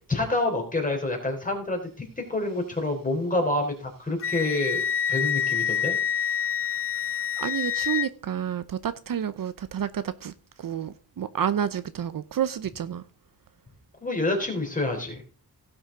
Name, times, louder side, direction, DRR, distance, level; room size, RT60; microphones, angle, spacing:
voice 1, 0.1-4.8 5.1-6.0 14.0-15.2, left 2 dB, 20° left, 3.4 m, -27 dB
Wind instrument woodwind instrument, 4.2-8.1, left 8 dB, 35° left, 0.4 m, -27 dB
voice 2, 7.1-10.3 10.6-13.0, right 9 dB, 60° right, 0.7 m, -30 dB
17.0 x 6.2 x 3.7 m
wide cardioid pair, 165°, 39 cm